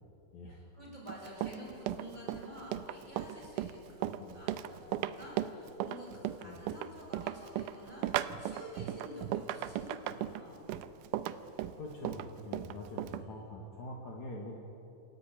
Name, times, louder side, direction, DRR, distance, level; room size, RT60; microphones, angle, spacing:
voice 1, 0.5-10.7 13.0-13.3, equal, 10° right, -5 dB, 7.4 m, -49 dB
Run, 1.1-13.2, right 12 dB, 80° right, 1.9 m, -36 dB
voice 2, 11.7-14.6, left 1 dB, 55° left, -1 dB, 2.9 m, -44 dB
27.5 x 13.0 x 9.0 m, 2.9 s
omnidirectional pair, 4.3 m